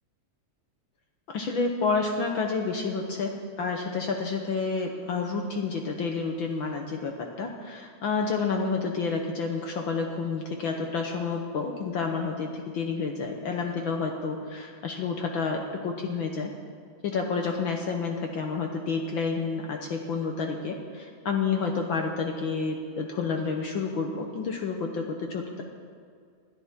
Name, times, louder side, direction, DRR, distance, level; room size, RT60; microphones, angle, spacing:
voice 1, 1.3-16.5 17.0-25.6, left 4 dB, 65° left, 2 dB, 1.2 m, -29 dB
20.5 x 12.5 x 3.7 m, 2.2 s
omnidirectional pair, 3.3 m